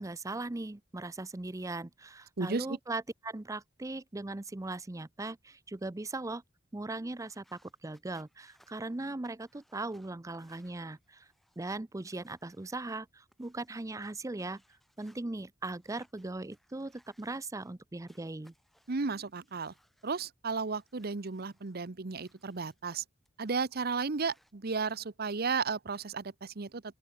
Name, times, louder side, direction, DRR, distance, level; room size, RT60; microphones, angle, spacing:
voice 1, 0.0-6.4 6.7-11.3 11.6-14.6 15.0-18.5, right 2 dB, 15° right, 0.5 m, -39 dB
sound 1, 7.1-15.2 15.7-17.7 18.1-20.2 20.6-23.0 23.2-24.5, equal, ahead, 6.6 m, -68 dB
voice 2, 18.9-19.7 20.0-23.0 23.4-26.8, right 4 dB, 50° right, 0.9 m, -34 dB
open air
head